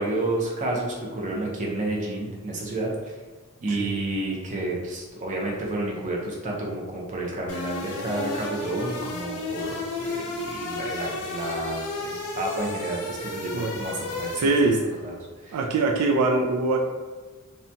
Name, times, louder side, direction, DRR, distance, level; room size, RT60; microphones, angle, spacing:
voice 1, 0.0-3.1 3.6-14.5 15.0-15.1 15.4-15.6, right 2 dB, 35° right, -2 dB, 0.5 m, -30 dB
sound 1, 7.5-14.9, left 2 dB, 75° left, 0.5 m, -33 dB
voice 2, 14.4-14.8 15.5-16.8, right 3 dB, 85° right, 2 dB, 0.3 m, -22 dB
2.8 x 2.2 x 2.6 m, 1.3 s
head